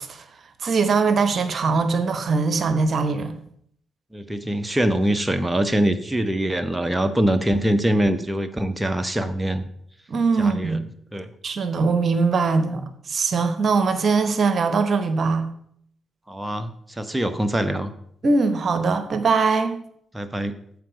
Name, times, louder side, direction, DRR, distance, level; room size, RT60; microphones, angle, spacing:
voice 1, 0.6-3.4 10.1-10.8 11.4-15.5 18.2-19.8, right 4 dB, 50° right, 10 dB, 0.9 m, -21 dB
voice 2, 4.1-9.6 10.4-10.8 11.1-11.3 16.3-17.9 20.1-20.5, right 1 dB, 15° right, 10 dB, 0.9 m, -23 dB
13.5 x 4.8 x 5.2 m, 0.68 s
hypercardioid pair, 40°, 0 cm